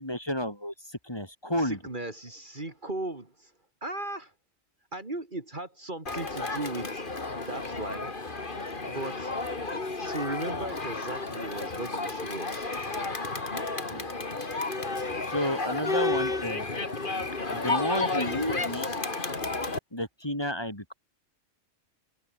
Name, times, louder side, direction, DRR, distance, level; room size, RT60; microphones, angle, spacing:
voice 1, 0.0-1.8 13.9-14.1 15.2-16.7 17.5-18.9 19.9-20.9, equal, 20° left, 4.8 m, -31 dB
voice 2, 1.6-3.5 3.8-4.3 4.9-7.0 7.5-8.1 8.9-9.3 10.0-12.7, right 2 dB, 40° right, 3.1 m, -37 dB
Crowd, 6.1-19.8, left 3 dB, 45° left, 2.6 m, -32 dB
omnidirectional pair, 1.2 m